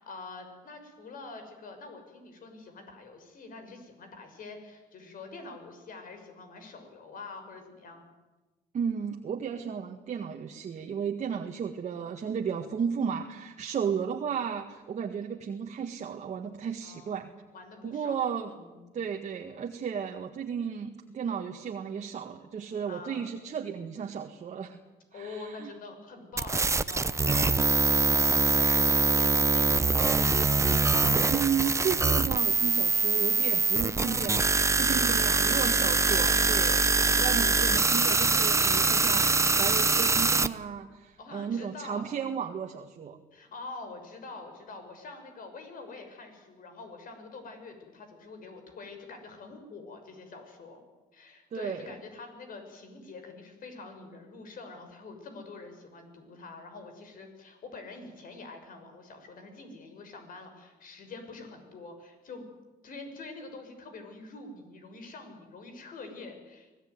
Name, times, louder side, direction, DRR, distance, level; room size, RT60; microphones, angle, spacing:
voice 1, 0.0-8.1 16.8-18.2 18.5-19.0 22.9-23.3 25.1-30.6 34.9-35.6 41.2-42.1 43.3-50.8 51.1-62.5 62.8-66.7, left 3 dB, 55° left, 6 dB, 6.5 m, -46 dB
voice 2, 8.7-17.3 17.8-18.5 18.9-24.8 25.1-25.7 31.3-43.2 51.5-51.9, right 7 dB, 45° right, 3 dB, 1.8 m, -34 dB
sound 1, 26.4-40.5, right 3 dB, 15° right, 0.9 m, -24 dB
25.0 x 18.0 x 9.6 m, 1.2 s
cardioid pair, 110°, 17 cm